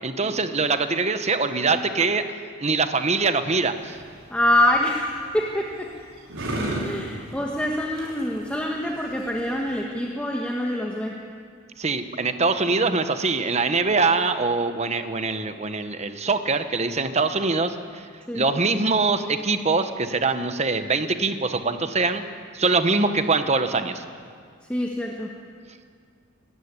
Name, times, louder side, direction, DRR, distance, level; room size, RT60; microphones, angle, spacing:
voice 1, 0.0-2.2 2.6-4.0 11.8-18.1 18.3-22.2 22.5-24.0, right 3 dB, 35° right, 9 dB, 1.1 m, -23 dB
sound 1, 3.7-9.8, right 1 dB, 85° right, 5.2 m, -35 dB
voice 2, 4.3-5.9 6.8-11.1 18.3-18.4 24.7-25.3, left 1 dB, 5° left, -1 dB, 1.5 m, -25 dB
24.0 x 14.0 x 9.8 m, 2.1 s
head